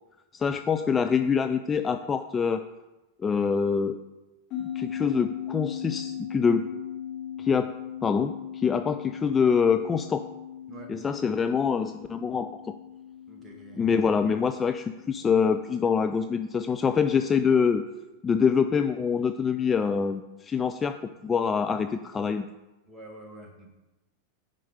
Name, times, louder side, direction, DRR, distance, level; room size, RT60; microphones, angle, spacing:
voice 1, 0.3-2.6 3.2-4.0 4.6-6.7 7.4-7.7 8.0-10.3 10.9-12.7 13.8-17.8 18.2-22.5, left 6 dB, 20° left, 8 dB, 0.4 m, -25 dB
sound 1, 4.5-17.3, left 9 dB, 35° left, 1.6 m, -39 dB
voice 2, 13.3-13.8 22.9-23.7, right 2 dB, 15° right, 2 dB, 1.9 m, -46 dB
8.9 x 5.4 x 4.9 m, 1.0 s
figure-of-eight pair, 90°, 0 cm